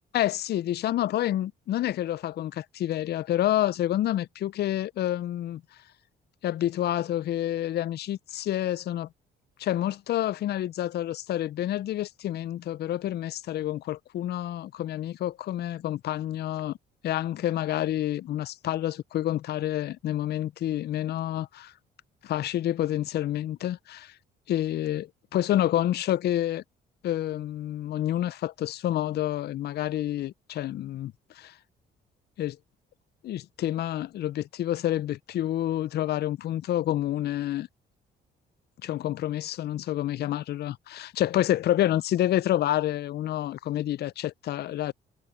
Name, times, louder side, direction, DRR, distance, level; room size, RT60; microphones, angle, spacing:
voice 1, 0.1-5.6 6.4-9.1 9.6-16.8 17.0-21.7 22.2-24.2 24.5-26.6 27.0-31.6 32.4-32.6 33.2-37.7 38.8-44.9, left 12 dB, 55° left, 0.4 m, -28 dB
cardioid pair, 90°, 20 cm